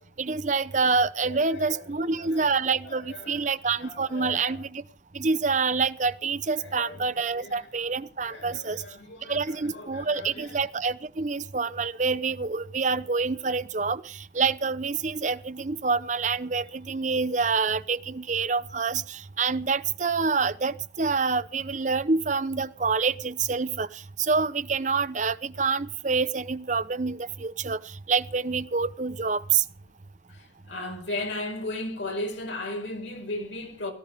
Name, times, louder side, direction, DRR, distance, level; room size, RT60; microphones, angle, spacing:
voice 1, 0.2-4.8 5.1-8.8 9.2-29.7, right 4 dB, 40° right, 0.7 m, -27 dB
voice 2, 1.2-4.6 6.5-7.7 8.3-10.6 30.3-33.9, left 2 dB, 80° left, 4.7 m, -37 dB
17.5 x 13.0 x 5.0 m
head